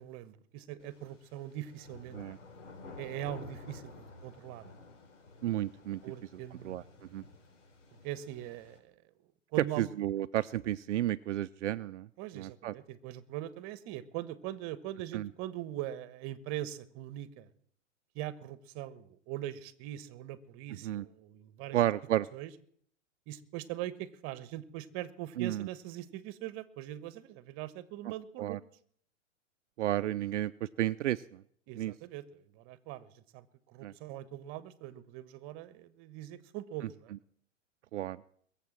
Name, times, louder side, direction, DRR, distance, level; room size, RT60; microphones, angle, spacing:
voice 1, 0.0-2.2 3.0-4.7 6.0-6.8 8.0-9.0 9.5-9.9 12.2-17.5 18.1-21.8 22.3-22.5 23.3-28.6 31.7-37.1, right 13 dB, 35° right, 16 dB, 1.2 m, -42 dB
sound 1, 0.8-8.8, left 3 dB, 70° left, 4.9 m, -52 dB
voice 2, 5.4-6.0 6.6-7.2 9.8-12.1 12.3-12.7 15.1-15.3 20.8-21.0 21.7-22.3 25.4-25.7 28.4-28.6 29.8-31.4 31.8-31.9 33.8-33.9 37.9-38.2, right 13 dB, 70° right, 13 dB, 0.6 m, -32 dB
21.5 x 7.5 x 7.4 m, 0.63 s
hypercardioid pair, 125°, 37 cm